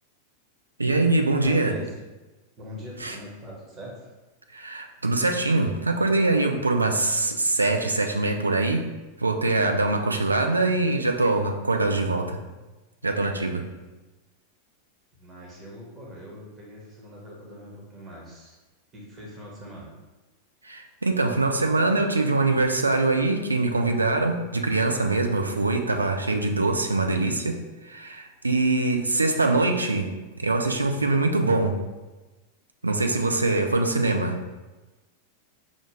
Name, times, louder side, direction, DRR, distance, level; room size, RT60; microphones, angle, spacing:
voice 1, 0.8-1.8 3.0-3.2 4.5-8.8 9.2-12.4 13.0-13.6 20.6-27.6 27.8-30.1 30.4-31.8 32.8-34.5, right 2 dB, 80° right, 4 dB, 0.4 m, -23 dB
voice 2, 1.4-1.9 2.6-4.1 15.2-18.5 18.9-19.9, equal, 25° right, -3 dB, 1.2 m, -42 dB
5.0 x 2.5 x 3.3 m, 1.2 s
figure-of-eight pair, 90°, 0 cm